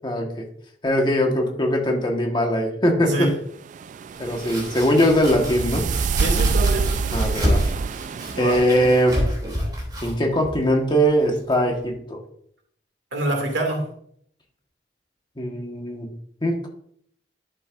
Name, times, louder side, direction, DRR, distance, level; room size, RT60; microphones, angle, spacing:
voice 1, 0.0-0.4 0.8-3.3 4.2-5.8 7.1-7.6 8.4-9.2 10.0-12.2 15.4-16.1 16.4-16.7, equal, 25° left, 1 dB, 1.4 m, -21 dB
sound 1, 3.7-9.0, right 4 dB, 45° right, 0.3 m, -26 dB
Domestic sounds home sounds, 4.1-11.8, equal, 25° right, 3.0 m, -30 dB
voice 2, 6.2-6.9 8.3-8.6 13.1-13.9, right 1 dB, 85° right, 2 dB, 2.4 m, -25 dB
11.0 x 7.5 x 2.6 m, 0.67 s
head